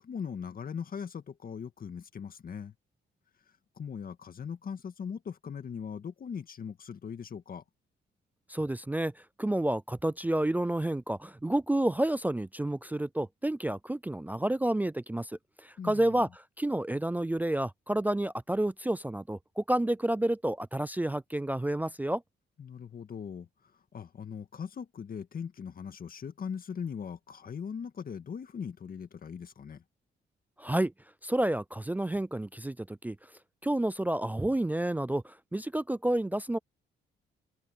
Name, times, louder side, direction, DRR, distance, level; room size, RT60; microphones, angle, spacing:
voice 1, 0.0-2.7 3.8-7.6 15.8-16.2 22.6-23.5 23.9-29.8, left 7 dB, 45° left, 1.9 m, -40 dB
voice 2, 8.5-16.3 16.6-22.2 30.6-30.9 31.2-33.2 33.6-36.6, right 1 dB, 10° right, 0.4 m, -30 dB
cardioid pair, 90°, 20 cm